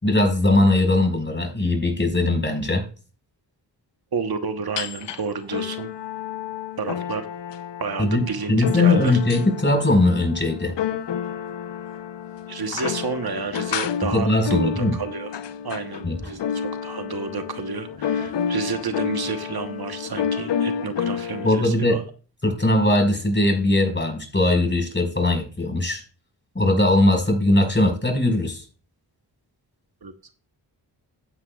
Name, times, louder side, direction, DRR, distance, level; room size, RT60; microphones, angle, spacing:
voice 1, 0.0-2.9 8.0-10.7 14.1-15.0 16.0-16.2 21.4-22.0 22.4-26.0 26.5-28.6, left 2 dB, 25° left, 4 dB, 5.0 m, -20 dB
voice 2, 4.1-5.9 6.8-7.2 7.8-9.2 12.5-15.3 15.6-22.0 30.0-30.3, right 5 dB, 55° right, 8 dB, 1.1 m, -30 dB
sound 1, 4.8-5.2 5.5-21.5, left 8 dB, 70° left, 0.8 m, -30 dB
14.0 x 9.4 x 2.4 m, 0.37 s
cardioid pair, 40°, 44 cm